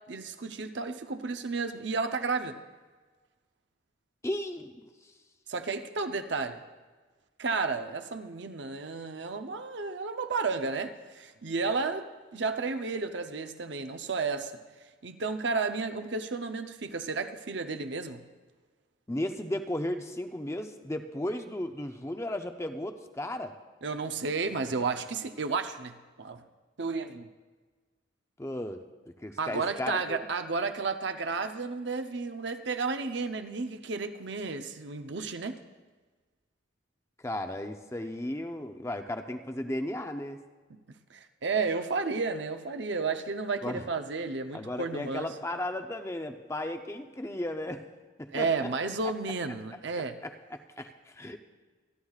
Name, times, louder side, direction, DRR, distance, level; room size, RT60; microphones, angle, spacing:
voice 1, 0.1-2.6 5.5-6.6 7.4-14.5 15.0-18.2 23.8-26.4 26.8-27.3 29.4-35.6 40.7-40.8 41.1-45.3 48.3-50.2, right 4 dB, 60° right, 8 dB, 0.7 m, -32 dB
voice 2, 4.2-4.7 19.1-23.5 28.4-28.8 29.2-30.2 37.2-40.4 43.6-43.8 44.5-47.8 48.2-48.7 50.2-51.4, left 1 dB, 15° left, 6 dB, 0.6 m, -35 dB
26.5 x 11.0 x 2.4 m, 1.4 s
head